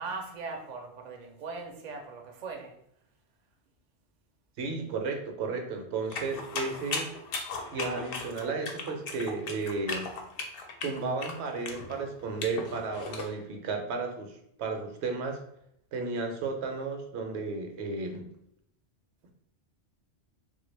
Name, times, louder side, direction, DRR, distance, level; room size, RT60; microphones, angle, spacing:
voice 1, 0.0-2.8, right 4 dB, 55° right, 0.6 m, -39 dB
voice 2, 4.6-7.1 7.7-10.1 10.8-15.4 15.9-18.3, right 4 dB, 75° right, 0.9 m, -33 dB
sound 1, 6.1-13.3, left 3 dB, 65° left, 0.7 m, -37 dB
3.1 x 2.3 x 3.2 m
omnidirectional pair, 1.1 m